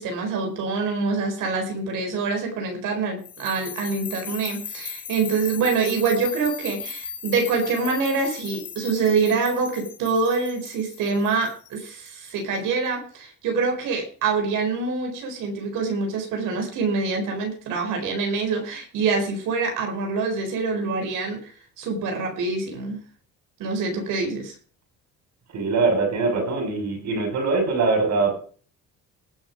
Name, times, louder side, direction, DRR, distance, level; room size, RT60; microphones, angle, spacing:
voice 1, 0.0-23.0 23.6-24.5, right 4 dB, 80° right, 3 dB, 4.4 m, -25 dB
sound 1, 3.2-12.3, left 7 dB, 55° left, 3.9 m, -37 dB
voice 2, 25.5-28.4, right 3 dB, 60° right, 4 dB, 6.7 m, -22 dB
19.0 x 6.3 x 5.2 m, 0.43 s
cardioid pair, 95°, 31 cm